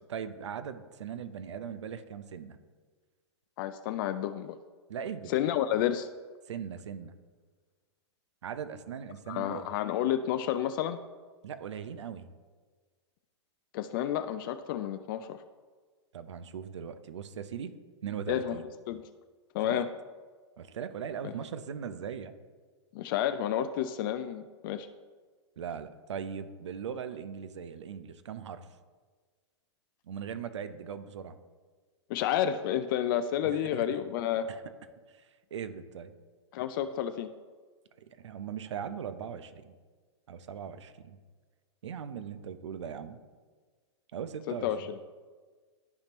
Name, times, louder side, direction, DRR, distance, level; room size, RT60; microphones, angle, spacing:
voice 1, 0.1-2.6 4.9-5.3 6.5-7.2 8.4-9.8 11.4-12.2 16.1-17.8 18.0-18.6 19.6-19.8 20.6-22.3 25.6-28.7 30.1-31.4 33.4-33.9 34.5-34.6 35.1-36.1 38.0-39.7 40.3-41.2 41.8-43.2 44.1-44.9, right 7 dB, 75° right, 11 dB, 0.6 m, -39 dB
voice 2, 3.6-4.6 5.3-6.1 9.3-11.0 13.7-15.4 18.3-19.0 19.5-19.9 21.2-21.3 22.9-24.9 32.1-34.5 36.5-37.3 44.5-45.0, left 10 dB, 45° left, 10 dB, 0.4 m, -30 dB
13.0 x 4.4 x 3.0 m, 1.5 s
hypercardioid pair, 120°, 15 cm